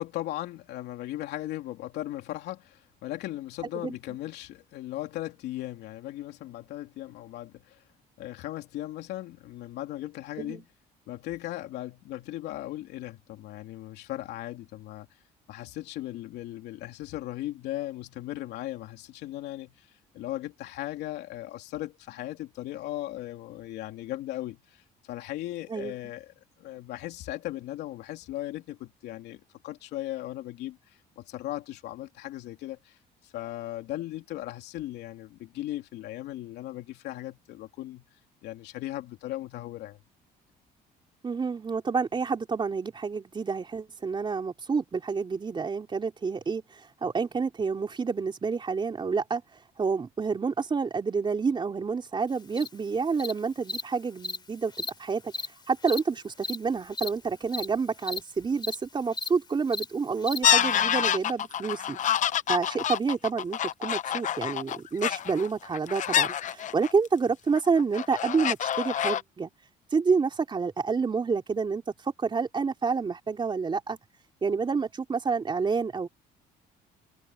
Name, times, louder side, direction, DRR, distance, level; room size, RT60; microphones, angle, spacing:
voice 1, 0.0-7.8 8.2-10.7 11.1-15.2 15.5-30.8 31.2-33.0 33.2-38.0 38.4-40.0, left 15 dB, 80° left, 3.3 m, -37 dB
voice 2, 41.2-49.4 49.8-55.3 55.7-62.0 62.5-69.5 69.9-74.0 74.4-76.1, right 5 dB, 30° right, 3.5 m, -28 dB
Cricket, 52.6-52.7 53.2-53.3 53.7-53.8 54.2-54.4 54.7-54.9 55.3-55.5 55.9-56.0 56.4-56.6 56.9-57.1 57.5-57.7 58.0-58.2 58.6-58.8 59.1-59.3 59.7-59.9 60.2-60.4, left 2 dB, 25° left, 3.2 m, -33 dB
sound 1, 60.4-67.1 67.6-69.2, left 10 dB, 45° left, 0.8 m, -27 dB
cardioid pair, 110°, 17 cm